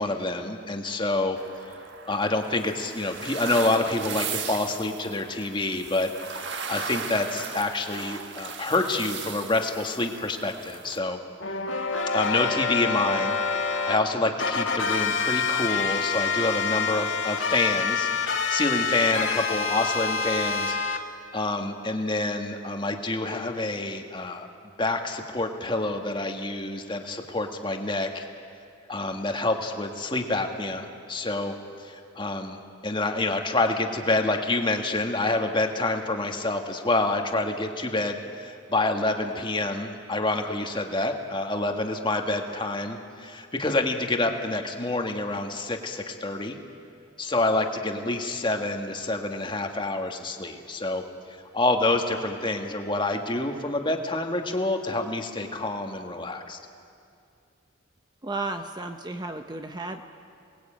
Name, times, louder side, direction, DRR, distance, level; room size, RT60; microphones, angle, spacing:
voice 1, 0.0-1.4 2.1-11.2 12.1-21.1 21.3-24.5 24.8-28.3 28.9-32.6 32.8-46.6 47.2-51.0 51.3-56.6, left 2 dB, 25° left, 4 dB, 1.7 m, -27 dB
sound 1, 1.4-11.0, right 6 dB, 60° right, 1.6 m, -37 dB
sound 2, 11.4-14.0 14.4-21.0, left 5 dB, 65° left, 1.9 m, -27 dB
voice 2, 58.2-60.0, right 2 dB, 20° right, 6 dB, 0.8 m, -33 dB
28.0 x 20.0 x 8.8 m, 2.4 s
head